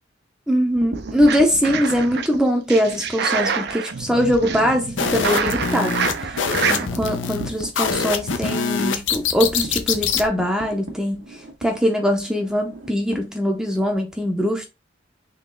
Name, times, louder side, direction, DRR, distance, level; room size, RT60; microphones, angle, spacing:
voice 1, 0.5-6.0 6.2-6.3 6.7-11.2 11.6-14.7, equal, 5° right, 0.6 m, -22 dB
sound 1, 0.6-3.8 4.2-4.3 4.6-4.7 5.1-13.9, right 2 dB, 80° right, 1.1 m, -39 dB
sound 2, 0.9-2.3 2.7-6.9, right 6 dB, 60° right, 0.5 m, -27 dB
sound 3, 5.0-10.3, left 6 dB, 75° left, 0.6 m, -24 dB
3.8 x 3.0 x 3.7 m
head